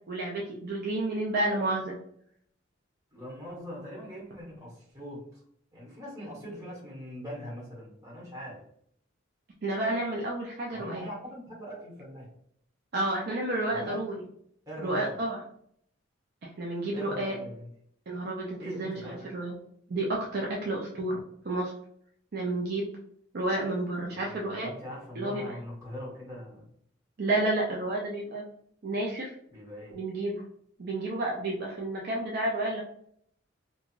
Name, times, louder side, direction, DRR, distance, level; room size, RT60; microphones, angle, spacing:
voice 1, 0.1-1.9 9.6-11.0 12.9-14.1 14.8-15.4 16.6-17.4 18.1-19.6 19.9-21.2 21.4-21.7 22.3-22.9 23.3-24.7 25.2-25.4 27.2-28.4 28.8-29.3 29.9-30.4 30.8-32.8, right 2 dB, 50° right, -2 dB, 0.5 m, -30 dB
voice 2, 3.1-5.4 5.7-8.6 10.7-12.3 13.7-14.0 14.7-15.2 16.9-17.7 18.6-19.3 24.1-26.7 29.5-29.9, equal, 15° right, -5 dB, 1.3 m, -41 dB
2.9 x 2.4 x 2.4 m, 0.66 s
head